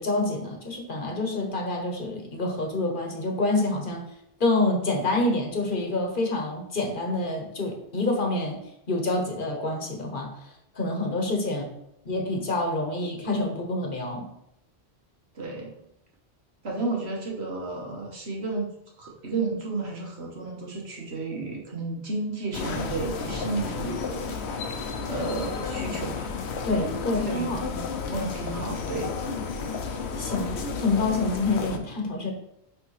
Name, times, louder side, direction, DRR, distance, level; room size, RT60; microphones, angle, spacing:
voice 1, 0.0-4.0 4.4-8.6 8.9-10.5 10.7-11.7 12.0-14.3 26.6-27.6 30.2-32.3, left 2 dB, 50° left, 2 dB, 1.2 m, -27 dB
voice 2, 15.3-15.7 16.6-18.7 19.0-26.3 27.2-29.1, right 3 dB, 75° right, -2 dB, 1.6 m, -32 dB
sound 1, 22.5-31.8, left 5 dB, 85° left, 1.0 m, -32 dB
9.3 x 3.3 x 3.2 m, 0.79 s
omnidirectional pair, 1.1 m